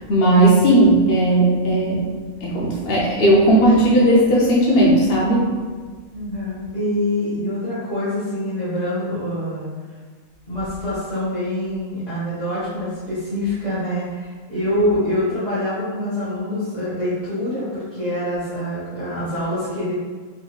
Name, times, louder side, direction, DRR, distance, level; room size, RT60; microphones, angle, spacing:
voice 1, 0.1-2.1 2.4-5.6, right 1 dB, 55° left, -5 dB, 0.8 m, -16 dB
voice 2, 6.1-9.7 10.5-20.0, left 1 dB, 30° left, -14 dB, 1.5 m, -25 dB
4.1 x 3.8 x 2.3 m, 1.5 s
omnidirectional pair, 1.4 m